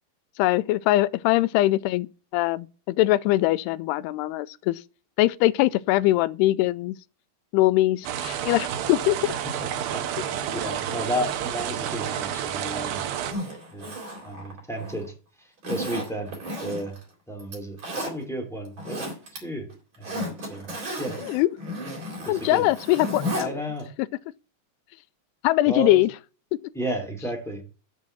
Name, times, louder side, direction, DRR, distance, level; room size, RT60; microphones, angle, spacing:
voice 1, 0.4-2.1 2.3-4.8 5.2-7.0 7.5-9.3 21.2-21.5 22.3-23.6 25.4-26.1, left 16 dB, 85° left, 2.6 m, -22 dB
sound 1, 8.0-13.3, right 10 dB, 75° right, 2.8 m, -30 dB
voice 2, 9.3-13.1 13.7-13.9 14.2-15.1 15.7-16.3 16.6-16.9 17.3-17.8 18.1-19.0 19.4-19.7 20.1-20.7 21.0-21.2 22.3-22.7 23.3-23.9 25.7-26.0 26.7-27.6, equal, ahead, 2.0 m, -32 dB
Zipper (clothing), 13.1-15.1 15.6-17.0 17.4-18.1 18.6-19.4 19.7-23.5 23.8-23.9, equal, 30° right, 4.2 m, -33 dB
7.4 x 6.2 x 7.3 m
omnidirectional pair, 4.6 m